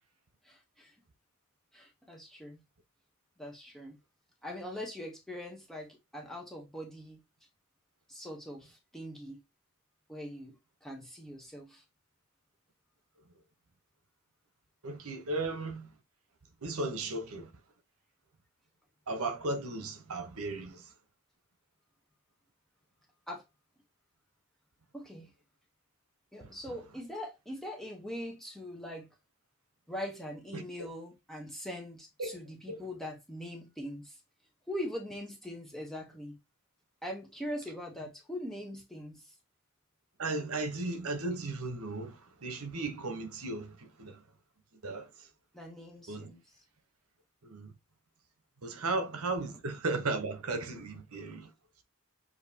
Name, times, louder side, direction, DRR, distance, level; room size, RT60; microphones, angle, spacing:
voice 1, 0.4-0.9 1.7-2.6 3.4-4.0 4.4-7.2 8.1-9.4 10.1-10.5 10.8-11.8 23.3-23.4 24.9-25.3 26.3-29.1 29.9-34.2 34.7-36.4 37.0-39.3 45.5-46.6, equal, ahead, 0.9 m, -42 dB
voice 2, 14.8-15.9 16.6-17.5 19.1-20.9 26.4-26.5 30.5-30.6 32.2-32.4 32.7-32.8 40.2-44.2 44.8-45.1 46.1-46.3 47.4-47.7 48.6-51.5, right 2 dB, 75° right, 1.0 m, -35 dB
6.5 x 2.8 x 2.8 m
head